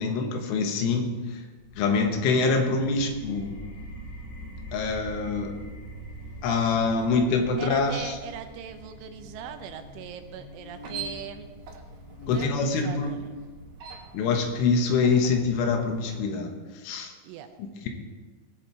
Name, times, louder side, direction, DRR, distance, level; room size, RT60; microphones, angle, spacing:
voice 1, 0.0-1.4 1.8-3.7 4.7-5.6 6.4-8.2 12.3-13.3 14.1-16.5 16.8-17.1 17.6-17.9, left 4 dB, 80° left, 4 dB, 3.6 m, -25 dB
Buzz, 1.6-13.0, left 3 dB, 60° left, 3.3 m, -46 dB
sound 1, 2.7-14.1, right 1 dB, 30° left, 4.9 m, -44 dB
voice 2, 7.6-11.5 12.2-13.3 17.2-17.5, right 9 dB, 80° right, 7 dB, 3.2 m, -40 dB
sound 2, 10.7-16.2, right 5 dB, 60° right, 3.0 m, -43 dB
18.5 x 7.8 x 4.5 m, 1.3 s
omnidirectional pair, 5.7 m